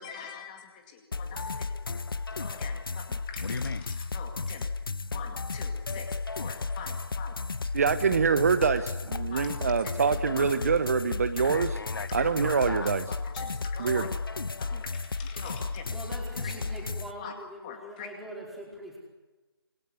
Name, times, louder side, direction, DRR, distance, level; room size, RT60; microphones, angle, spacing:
voice 1, 0.0-1.7 2.4-4.7 5.1-7.4 9.3-9.7 10.3-10.4 12.0-12.3 12.8-14.1 14.6-15.9 16.4-16.5 17.2-17.3 17.6-18.1, left 7 dB, 20° left, 4 dB, 2.3 m, -44 dB
sound 1, 1.1-17.1, left 4 dB, 60° left, 1.2 m, -34 dB
voice 2, 7.7-11.7 12.1-13.0 13.8-14.1, right 6 dB, 35° right, 11 dB, 0.9 m, -25 dB
voice 3, 15.9-19.0, right 1 dB, ahead, -3 dB, 4.7 m, -42 dB
27.0 x 21.5 x 9.7 m, 1.2 s
figure-of-eight pair, 155°, 13 cm